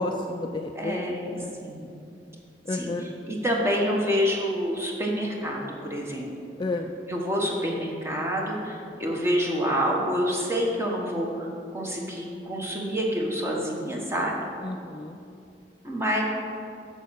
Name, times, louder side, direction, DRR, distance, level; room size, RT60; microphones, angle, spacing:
voice 1, 0.0-1.5 2.7-3.0 6.6-6.9 14.6-15.2, left 2 dB, 25° left, 4 dB, 0.3 m, -31 dB
voice 2, 0.7-1.9 2.7-6.3 7.1-14.3 15.8-16.2, equal, 15° right, -1 dB, 1.1 m, -28 dB
6.8 x 6.7 x 6.4 m, 2.6 s
head